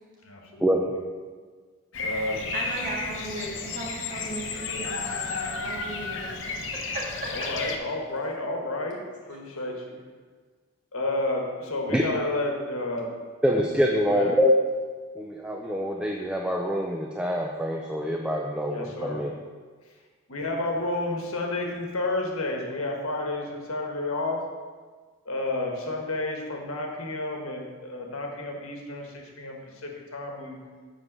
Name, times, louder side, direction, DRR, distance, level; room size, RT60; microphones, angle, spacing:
voice 1, 0.2-1.0 2.0-2.4 7.2-9.0 9.3-10.0 10.9-13.1 14.0-14.4 18.7-19.2 20.3-24.4 25.2-30.6, left 2 dB, 80° left, 1 dB, 1.4 m, -31 dB
Bird vocalization bird call bird song, 1.9-7.8, left 4 dB, 60° left, 0.8 m, -33 dB
voice 2, 2.5-6.4 6.7-7.5, right 1 dB, 40° right, -4 dB, 1.8 m, -36 dB
voice 3, 13.4-14.5 15.2-19.3, equal, 5° right, 0 dB, 0.4 m, -25 dB
7.6 x 4.8 x 6.0 m, 1.5 s
head